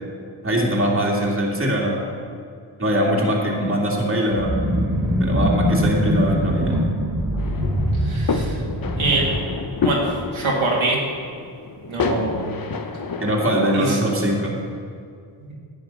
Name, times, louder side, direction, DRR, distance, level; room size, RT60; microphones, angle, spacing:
voice 1, 0.4-2.0 2.8-4.6 5.2-6.8 13.2-14.6, equal, 25° right, -3 dB, 2.6 m, -21 dB
sound 1, 4.3-10.3, equal, 5° right, 2.6 m, -23 dB
sound 2, 7.4-13.5, left 4 dB, 45° left, 1.0 m, -29 dB
voice 2, 8.0-8.6 9.0-9.3 9.8-10.0 10.3-11.0 11.9-12.5 13.7-14.0, right 3 dB, 70° right, -4 dB, 2.2 m, -23 dB
10.5 x 7.0 x 5.7 m, 2.3 s
cardioid pair, 45°, 50 cm